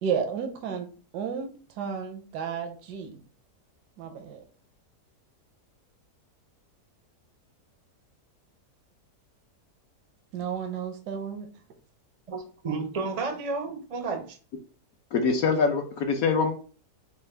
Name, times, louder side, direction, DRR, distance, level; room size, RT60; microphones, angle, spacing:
voice 1, 0.0-1.5 1.8-3.2 4.0-4.4 10.3-11.5, right 7 dB, 80° right, 5 dB, 1.2 m, -32 dB
voice 2, 12.3-14.4, right 4 dB, 60° right, 5 dB, 0.3 m, -32 dB
voice 3, 15.1-16.5, left 5 dB, 70° left, 4 dB, 1.0 m, -24 dB
5.3 x 2.2 x 3.3 m, 0.38 s
omnidirectional pair, 1.8 m